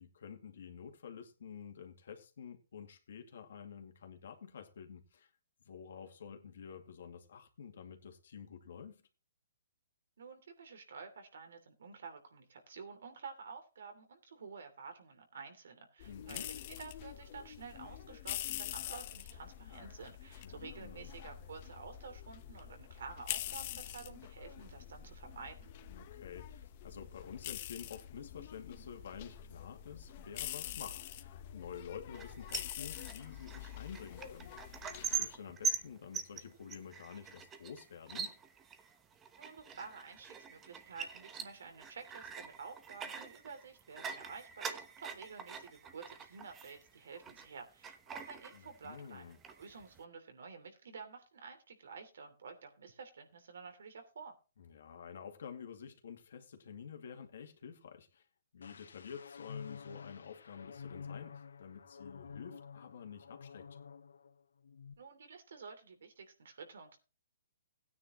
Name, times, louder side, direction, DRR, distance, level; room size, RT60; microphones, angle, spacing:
voice 1, 0.0-5.3 5.6-9.0 16.1-16.5 20.4-21.1 25.9-34.5 35.0-38.3 48.5-49.4 54.6-58.3 58.5-63.8, left 7 dB, 70° left, 2.3 m, -50 dB
voice 2, 10.2-25.7 39.4-54.3 65.0-67.0, right 5 dB, 75° right, 3.0 m, -50 dB
sound 1, 16.0-35.3, left 12 dB, 40° left, 1.0 m, -45 dB
sound 2, 32.1-47.5 47.8-49.0 49.3-50.0, right 6 dB, 15° right, 1.1 m, -43 dB
sound 3, 58.6-64.3 64.6-64.9, left 6 dB, 85° left, 0.9 m, -50 dB
16.0 x 9.6 x 3.1 m
hypercardioid pair, 150°, 0 cm